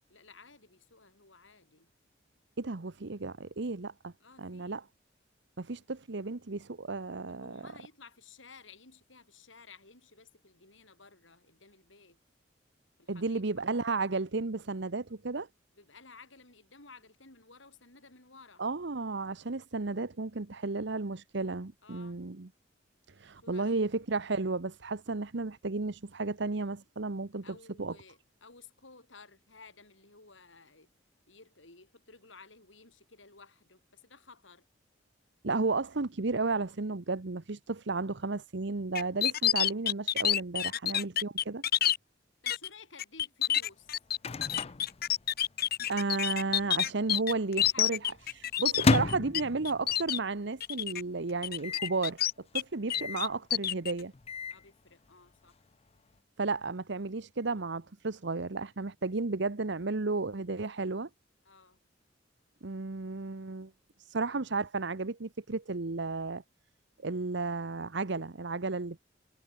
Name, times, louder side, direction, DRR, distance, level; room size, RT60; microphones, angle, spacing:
voice 1, 0.1-1.9 4.2-4.8 7.3-12.2 13.0-13.7 15.8-18.6 21.8-22.2 23.4-23.9 27.4-30.9 31.3-34.7 42.4-43.9 47.5-48.5 54.5-55.6 61.5-61.8, left 4 dB, 80° left, 6.9 m, -55 dB
voice 2, 2.6-4.1 4.4-4.8 5.6-7.7 13.1-15.5 18.6-22.5 23.1-27.4 27.8-28.0 35.4-41.6 45.9-48.0 48.3-52.2 52.5-54.1 56.4-61.1 62.6-63.7 64.0-66.4 67.0-69.0, right 3 dB, 65° right, 1.0 m, -33 dB
sound 1, 38.9-42.0 42.5-42.7 43.0-49.4 49.6-50.2 50.6-51.0 51.4-52.6 52.9-53.9, left 11 dB, 55° left, 1.4 m, -28 dB
Microwave oven, 43.6-45.8 46.1-46.2 46.4-46.9 47.4-50.2 50.6-50.7 50.9-51.0 51.6-52.0 52.9-53.3 54.0-54.7, left 3 dB, 35° left, 0.6 m, -33 dB
head